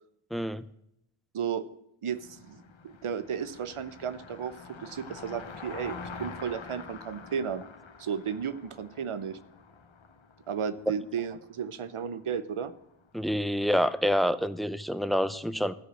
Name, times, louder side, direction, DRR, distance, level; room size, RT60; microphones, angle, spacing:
voice 1, 0.3-0.7 13.1-15.8, equal, ahead, 14 dB, 0.5 m, -27 dB
voice 2, 2.0-7.6 8.0-9.4 10.5-12.7, right 7 dB, 80° right, 13 dB, 0.8 m, -34 dB
Car passing by, 2.1-14.4, left 5 dB, 65° left, 1.2 m, -47 dB
13.0 x 5.0 x 7.6 m, 0.76 s
wide cardioid pair, 60°, 49 cm